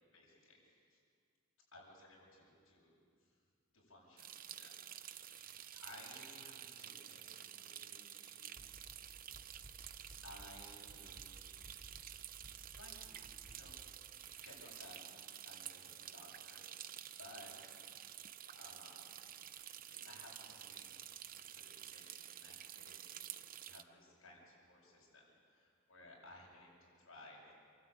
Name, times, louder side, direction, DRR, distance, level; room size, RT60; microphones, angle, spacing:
voice 1, 0.1-1.0 1.7-3.4 3.7-4.7 5.2-8.5 9.8-11.3 12.7-13.8 14.1-17.7 18.5-19.2 19.6-27.5, left 2 dB, 70° left, -4 dB, 7.8 m, -59 dB
sound 1, 4.2-23.8, right 11 dB, 45° right, 0.6 m, -51 dB
sound 2, 8.6-10.6 10.9-13.5, equal, 30° left, 6.3 m, -58 dB
27.0 x 13.0 x 9.1 m, 2.2 s
head